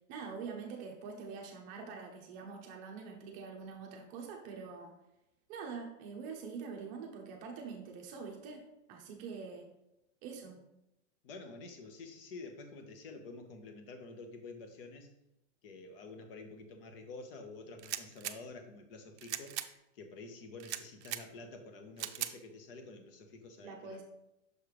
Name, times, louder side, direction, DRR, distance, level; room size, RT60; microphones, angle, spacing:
voice 1, 0.1-4.9 5.5-9.7 10.2-10.6 23.6-24.0, right 5 dB, 20° right, 2 dB, 0.7 m, -45 dB
voice 2, 11.2-15.1 15.6-19.5 19.9-24.0, left 3 dB, 50° left, 6 dB, 1.0 m, -49 dB
sound 1, 17.8-18.4 19.2-19.7 20.6-21.2 22.0-22.3, right 13 dB, 65° right, 0.5 m, -39 dB
6.4 x 3.3 x 4.9 m, 0.87 s
supercardioid pair, 165°, 37 cm